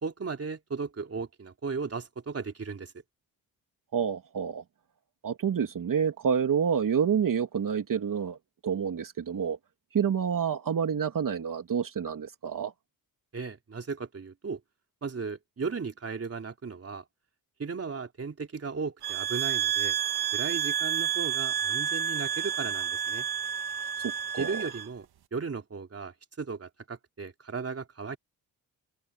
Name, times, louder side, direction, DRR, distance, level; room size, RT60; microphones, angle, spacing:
voice 1, 0.0-2.9 13.3-14.6 15.0-17.0 17.6-20.0 20.3-23.3 24.4-25.1 25.3-28.2, right 5 dB, 40° right, 3.6 m, -36 dB
voice 2, 3.9-4.6 5.2-8.4 8.6-9.6 9.9-12.7 24.0-24.7, right 7 dB, 55° right, 3.0 m, -28 dB
sound 1, 19.0-24.9, right 9 dB, 75° right, 2.1 m, -30 dB
cardioid pair, 80°, 38 cm